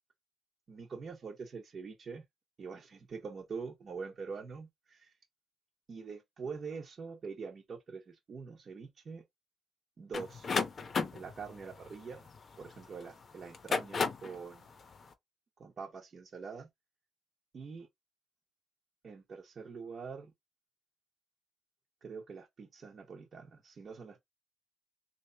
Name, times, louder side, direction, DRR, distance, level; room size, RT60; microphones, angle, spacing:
voice 1, 0.7-2.2 2.6-5.1 5.9-9.2 10.0-10.5 11.1-12.3 12.6-14.7 15.6-16.7 17.5-17.9 19.0-20.3 22.0-24.2, right 5 dB, 45° right, 1.0 m, -44 dB
sound 1, 10.1-12.9 13.5-14.4, left 5 dB, 45° left, 0.8 m, -34 dB
3.3 x 2.8 x 3.3 m
cardioid pair, 90°, 0 cm